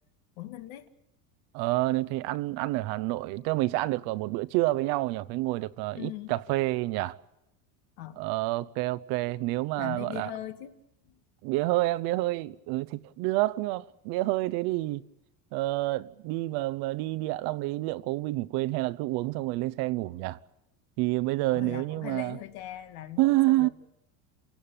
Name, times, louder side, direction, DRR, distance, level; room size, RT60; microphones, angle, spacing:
voice 1, 0.4-0.9 5.9-6.4 8.0-8.3 9.8-10.8 11.0-11.2 21.5-23.7, left 13 dB, 75° left, 2.4 m, -40 dB
voice 2, 1.5-7.2 8.2-10.3 11.4-15.0 15.5-20.4 21.0-22.4 23.2-23.7, right 19 dB, 60° right, 0.9 m, -28 dB
28.5 x 17.5 x 8.9 m
cardioid pair, 145°, 42 cm